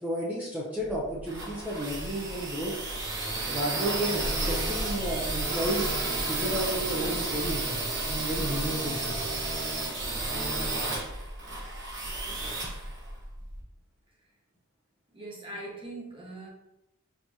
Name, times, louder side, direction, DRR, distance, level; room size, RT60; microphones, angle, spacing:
voice 1, 0.0-2.8 3.5-9.3, right 1 dB, 5° right, -6 dB, 0.6 m, -32 dB
sound 1, 0.9-13.6, right 2 dB, 50° right, 1.0 m, -32 dB
voice 2, 15.1-16.5, right 1 dB, 25° right, -3 dB, 0.9 m, -41 dB
4.5 x 2.9 x 2.7 m, 0.89 s
head